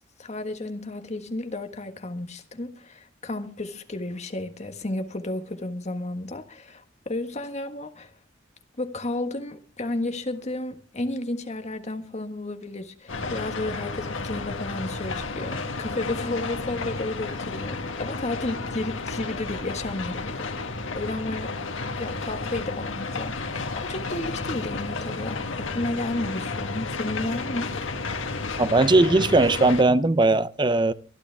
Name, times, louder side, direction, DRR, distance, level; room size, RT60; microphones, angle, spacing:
voice 1, 0.2-8.1 8.8-20.5 20.9-21.6 22.0-27.7, left 2 dB, 35° left, 1.5 m, -32 dB
sound 1, 13.1-29.8, left 3 dB, 85° left, 1.5 m, -32 dB
voice 2, 28.6-30.9, right 2 dB, 25° right, 0.6 m, -19 dB
23.0 x 12.0 x 3.4 m
head